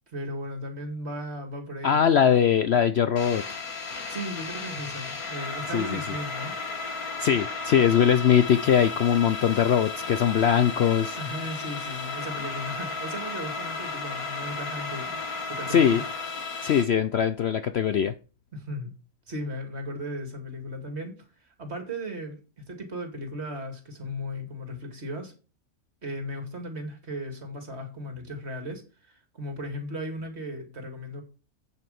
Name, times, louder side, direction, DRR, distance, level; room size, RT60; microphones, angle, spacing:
voice 1, 0.1-2.0 4.1-6.6 11.2-15.2 15.5-16.0 18.5-18.9 19.3-25.3 26.0-31.2, equal, 45° right, 2.6 m, -36 dB
voice 2, 1.8-3.6 5.7-6.0 7.2-11.2 15.7-16.0 16.6-18.1, left 8 dB, 60° left, 0.7 m, -21 dB
sound 1, 3.2-16.8, left 4 dB, 80° left, 2.3 m, -34 dB
8.5 x 7.6 x 5.3 m
omnidirectional pair, 1.5 m